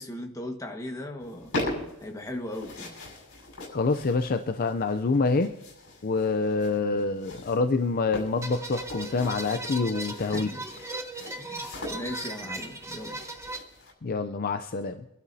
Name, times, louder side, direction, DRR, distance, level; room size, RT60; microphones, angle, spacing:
voice 1, 0.0-1.5 2.0-2.9 10.3-10.6 11.4-13.2, left 1 dB, 15° left, 3 dB, 1.5 m, -38 dB
sound 1, 1.2-13.9, left 1 dB, 60° left, 6.2 m, -40 dB
voice 2, 3.7-5.5 6.0-10.5 14.0-15.0, left 4 dB, 40° left, 9 dB, 0.5 m, -26 dB
sound 2, 8.4-13.6, right 2 dB, 15° right, 1.0 m, -38 dB
25.5 x 12.5 x 2.7 m, 0.94 s
head